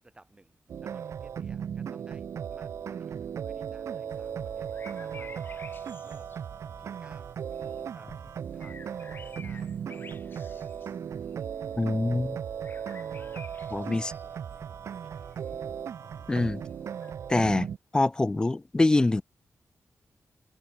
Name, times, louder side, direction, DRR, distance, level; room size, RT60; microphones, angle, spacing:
voice 1, 0.0-7.4 7.9-11.1 11.7-11.8 13.7-15.9, right 2 dB, 20° right, 7.0 m, -59 dB
sound 1, 0.7-17.8, right 8 dB, 65° right, 0.3 m, -37 dB
sound 2, 4.1-17.1, left 5 dB, 40° left, 1.4 m, -52 dB
voice 2, 11.8-12.4 13.7-14.1 16.3-16.6 17.3-17.7 17.9-19.2, left 2 dB, 15° left, 0.3 m, -24 dB
wide cardioid pair, 150°, 5 cm